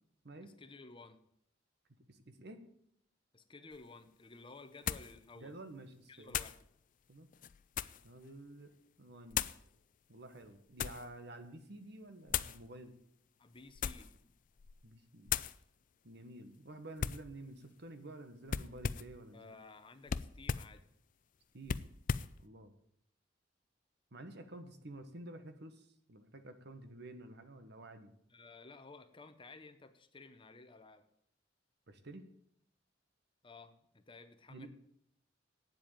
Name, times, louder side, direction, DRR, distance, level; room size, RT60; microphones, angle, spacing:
voice 1, 0.4-1.2 3.3-5.6 6.1-6.6 13.4-14.3 19.3-20.8 28.3-31.0 33.4-34.7, left 3 dB, 25° left, 10 dB, 0.8 m, -54 dB
voice 2, 2.1-2.6 5.3-6.4 7.1-7.3 8.0-8.7 9.0-9.5 10.1-12.9 14.8-15.4 16.0-19.6 21.5-21.8 22.4-22.7 24.1-28.1 31.9-32.2 34.5-34.7, right 1 dB, 60° right, 9 dB, 1.3 m, -51 dB
sound 1, 3.7-3.8 4.9-5.1 6.3-6.6 7.3-8.1 9.3-9.6 10.4-11.1 12.3-12.6 13.7-14.2 14.6-14.8 15.3-15.6 17.0-17.3 18.5-19.2 20.1-20.7 21.6-22.3, left 7 dB, 45° left, 0.4 m, -37 dB
9.1 x 7.8 x 8.8 m, 0.72 s
head